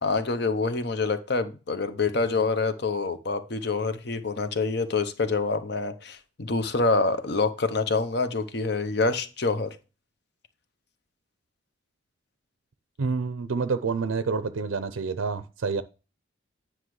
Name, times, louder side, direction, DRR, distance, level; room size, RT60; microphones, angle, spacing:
voice 1, 0.0-9.8, left 3 dB, 55° left, 0.8 m, -26 dB
voice 2, 13.0-15.8, right 4 dB, 80° right, 0.5 m, -28 dB
9.7 x 5.9 x 3.1 m
head